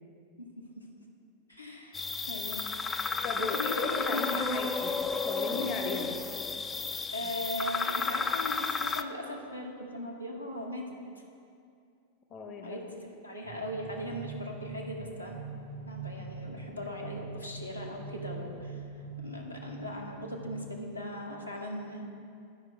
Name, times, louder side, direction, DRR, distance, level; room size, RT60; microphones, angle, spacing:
voice 1, 1.5-2.6 3.4-4.7 7.1-11.0 12.6-15.4 15.9-18.8 19.2-22.0, left 1 dB, 90° left, -2 dB, 0.9 m, -39 dB
sound 1, 1.9-9.0, left 4 dB, 15° left, 0.3 m, -32 dB
voice 2, 3.2-4.9 5.3-6.2 7.2-7.3 12.3-12.8, left 3 dB, 35° left, 4 dB, 0.7 m, -36 dB
sound 2, 13.4-21.3, right 4 dB, 65° right, 1.5 m, -43 dB
10.5 x 5.0 x 4.6 m, 2.4 s
figure-of-eight pair, 90°, 0 cm